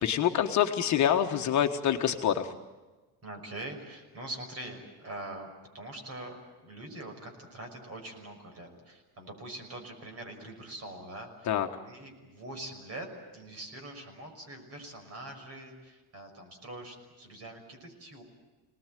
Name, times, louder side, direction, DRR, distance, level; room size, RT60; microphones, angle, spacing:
voice 1, 0.0-2.5 11.4-11.7, left 9 dB, 45° left, 4 dB, 1.5 m, -26 dB
voice 2, 3.2-11.5 11.9-18.2, right 1 dB, 35° right, 4 dB, 6.0 m, -43 dB
27.5 x 19.5 x 9.2 m, 1.2 s
cardioid pair, 160°, 41 cm